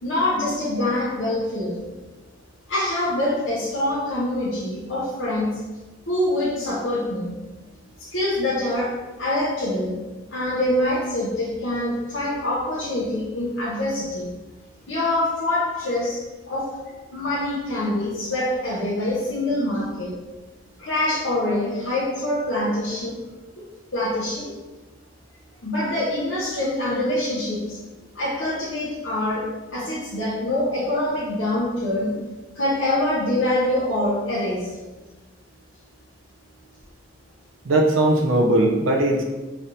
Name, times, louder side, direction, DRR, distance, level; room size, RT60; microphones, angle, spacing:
voice 1, 0.0-1.8 2.7-5.6 6.1-7.4 8.0-10.0 10.3-14.3 14.9-20.1 20.8-23.2 23.6-23.7 23.9-24.6 25.6-27.8 28.1-32.2 32.5-34.7, left 1 dB, 75° left, -8 dB, 0.7 m, -25 dB
voice 2, 37.6-39.2, right 1 dB, 80° right, 2 dB, 0.5 m, -19 dB
3.3 x 2.5 x 4.0 m, 1.2 s
head